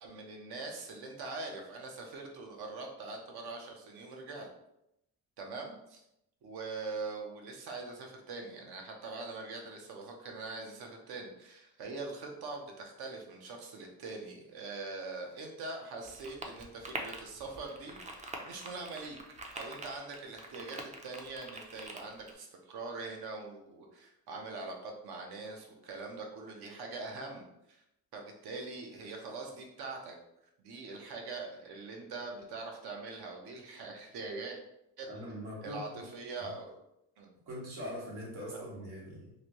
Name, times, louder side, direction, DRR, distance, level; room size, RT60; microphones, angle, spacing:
voice 1, 0.0-4.5 5.4-6.0 6.4-19.2 19.5-27.8 28.1-30.2 30.6-34.6 35.0-35.1 35.6-36.7 37.2-37.3 38.5-38.7, right 3 dB, 70° right, 2 dB, 0.8 m, -43 dB
sound 1, 16.0-22.3, right 2 dB, 20° right, 0.4 m, -45 dB
voice 2, 35.1-36.1 36.4-36.5 37.5-39.3, equal, 85° right, -4 dB, 1.5 m, -42 dB
3.1 x 2.6 x 2.9 m, 0.83 s
cardioid pair, 115°, 40 cm